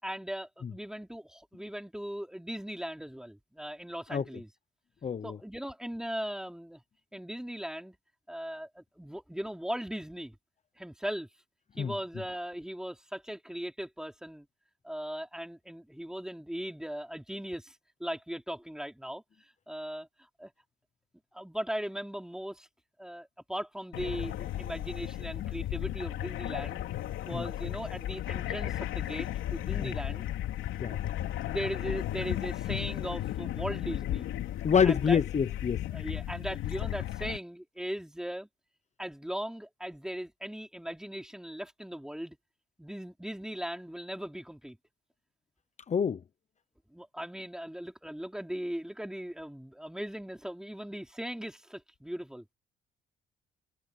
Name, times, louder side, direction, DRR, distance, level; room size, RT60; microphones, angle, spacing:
voice 1, 0.0-4.5 5.2-6.8 7.1-8.0 8.3-10.4 10.8-11.3 11.8-14.5 14.8-19.2 19.7-20.5 21.3-22.7 23.0-26.8 27.2-30.3 30.9-31.0 31.5-34.3 34.8-35.2 35.9-38.5 39.0-42.4 42.8-44.8 46.9-52.5, equal, 5° right, 4.1 m, -38 dB
voice 2, 5.0-5.4 11.8-11.9 27.3-27.4 29.8-29.9 30.8-31.0 34.6-35.8 45.9-46.2, left 7 dB, 35° left, 0.8 m, -26 dB
sound 1, 23.9-37.4, left 13 dB, 85° left, 3.3 m, -35 dB
cardioid pair, 90°, 20 cm